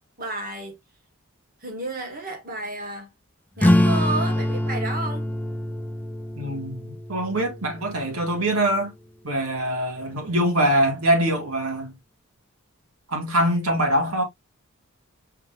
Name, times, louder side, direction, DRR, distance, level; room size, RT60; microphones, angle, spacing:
voice 1, 0.2-0.8 1.6-3.1 3.6-5.3, right 2 dB, 40° right, 1.6 m, -31 dB
sound 1, 3.6-8.7, left 1 dB, 10° left, 0.4 m, -25 dB
voice 2, 6.4-8.9 9.2-11.9 13.1-14.2, right 1 dB, 85° right, 2.1 m, -23 dB
5.7 x 3.7 x 2.5 m
head